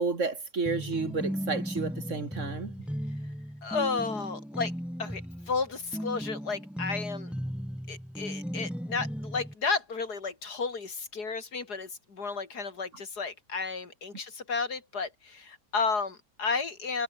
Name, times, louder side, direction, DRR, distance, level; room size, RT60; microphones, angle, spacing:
voice 1, 0.0-2.7, right 4 dB, 50° right, 2.6 m, -31 dB
sound 1, 0.7-9.5, equal, ahead, 3.3 m, -36 dB
voice 2, 3.6-4.7 5.0-5.2 5.5-7.3 7.9-17.0, left 4 dB, 85° left, 3.5 m, -32 dB
omnidirectional pair, 1.7 m